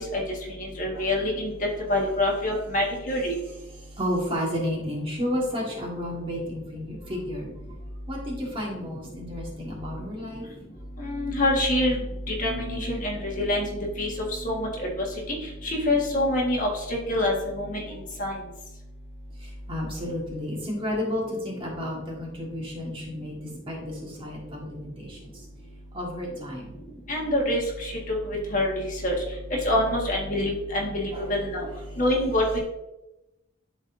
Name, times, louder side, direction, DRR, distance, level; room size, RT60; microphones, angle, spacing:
voice 1, 0.8-1.5 1.9-3.3 11.0-12.0 12.4-13.6 14.0-14.1 14.4-14.7 15.6-17.8 18.2-18.3 27.1-27.9 28.3-29.1 29.6-31.7 32.0-32.6, left 1 dB, 40° left, -2 dB, 1.6 m, -25 dB
voice 2, 3.8-7.5 8.1-10.4 19.4-25.4 25.9-26.8 31.1-31.3 31.9-32.0, left 1 dB, 30° right, -2 dB, 1.7 m, -32 dB
11.5 x 4.1 x 2.6 m, 0.95 s
head